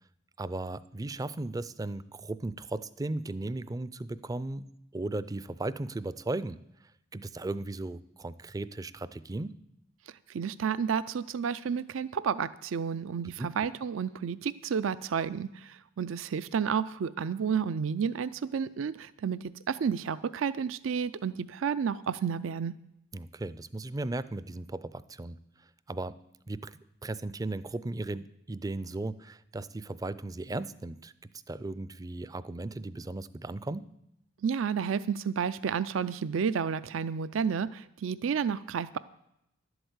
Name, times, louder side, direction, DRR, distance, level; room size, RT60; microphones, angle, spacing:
voice 1, 0.4-4.7 4.9-6.6 7.1-9.6 13.4-13.5 23.1-25.4 25.9-26.2 26.5-31.1 31.5-33.9, right 2 dB, 20° right, 16 dB, 0.4 m, -36 dB
voice 2, 10.3-22.7 34.4-39.0, right 6 dB, 80° right, 15 dB, 0.4 m, -31 dB
11.5 x 8.0 x 8.0 m, 0.80 s
head